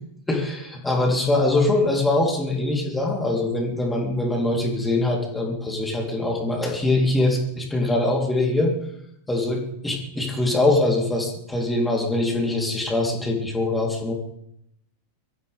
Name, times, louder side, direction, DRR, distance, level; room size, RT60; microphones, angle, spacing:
voice 1, 0.3-8.7 9.3-14.1, left 2 dB, 5° left, -1 dB, 3.6 m, -23 dB
23.5 x 14.5 x 3.6 m, 0.75 s
figure-of-eight pair, 90°, 0 cm